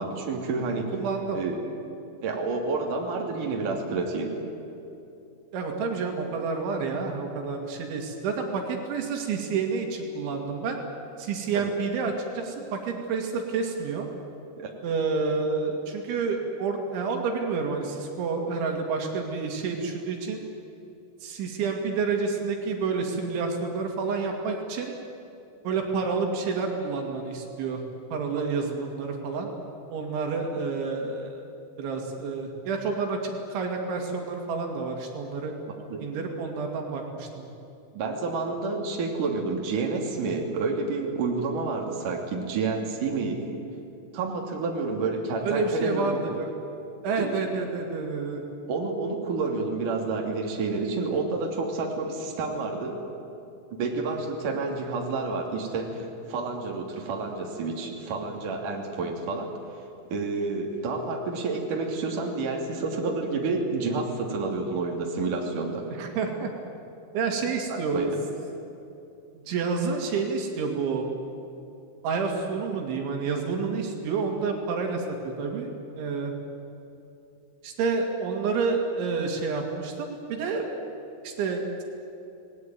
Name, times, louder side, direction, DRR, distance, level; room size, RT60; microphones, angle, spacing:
voice 1, 0.0-0.9 1.3-1.6 2.2-4.3 11.5-11.7 14.6-14.7 28.3-28.4 35.9-36.0 37.9-43.4 44.1-46.4 47.2-47.4 48.7-53.0 53.8-59.5 60.1-65.9 67.7-68.2, right 3 dB, 50° right, 0 dB, 4.1 m, -29 dB
voice 2, 0.9-1.4 5.5-10.8 11.2-14.1 14.8-20.4 21.2-24.9 25.6-27.8 28.1-29.5 29.9-31.4 31.8-35.5 36.0-37.4 45.4-46.5 47.0-48.4 66.0-66.5 67.1-68.1 69.3-71.1 72.0-76.3 77.6-80.6 81.2-81.8, right 4 dB, 80° right, 2 dB, 4.8 m, -29 dB
29.0 x 20.0 x 9.2 m, 2.8 s
omnidirectional pair, 5.4 m